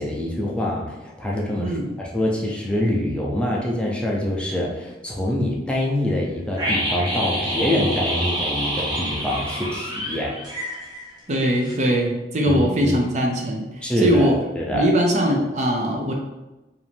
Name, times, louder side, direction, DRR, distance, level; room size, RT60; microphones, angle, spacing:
voice 1, 0.0-10.4 12.5-13.0 13.8-14.9, left 1 dB, 5° left, -3 dB, 0.6 m, -25 dB
sound 1, 6.6-11.4 11.6-11.7, equal, 25° right, 1.0 m, -27 dB
voice 2, 11.3-14.4 14.7-16.1, equal, 40° right, 1 dB, 0.6 m, -21 dB
4.9 x 2.7 x 3.5 m, 1.0 s
head